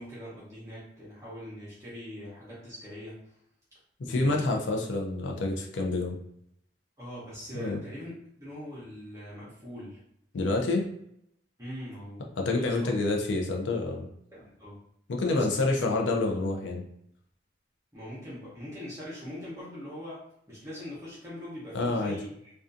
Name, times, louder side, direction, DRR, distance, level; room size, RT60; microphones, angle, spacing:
voice 1, 0.0-3.2 4.0-4.4 7.0-8.1 8.4-10.0 11.6-12.9 14.3-14.8 15.3-15.5 17.9-22.5, equal, 15° right, -9 dB, 0.7 m, -42 dB
voice 2, 4.1-6.2 7.5-7.8 10.3-10.8 12.4-14.0 15.1-16.8 21.7-22.2, left 2 dB, 80° left, 1 dB, 0.4 m, -28 dB
2.4 x 2.3 x 2.5 m, 0.72 s
head